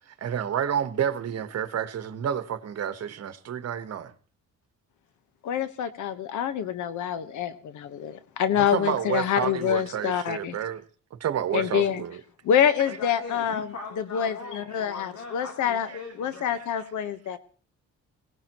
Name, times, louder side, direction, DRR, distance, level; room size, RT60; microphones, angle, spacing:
voice 1, 0.2-4.1 8.5-10.8 11.1-12.2, right 9 dB, 55° right, 1.3 m, -29 dB
voice 2, 5.4-10.6 11.5-12.0 12.4-13.7 14.1-15.9 16.2-17.4, left 9 dB, 75° left, 1.2 m, -26 dB
voice 3, 12.8-16.5, left 4 dB, 60° left, 3.3 m, -41 dB
21.5 x 17.5 x 3.1 m
cardioid pair, 90°, 30 cm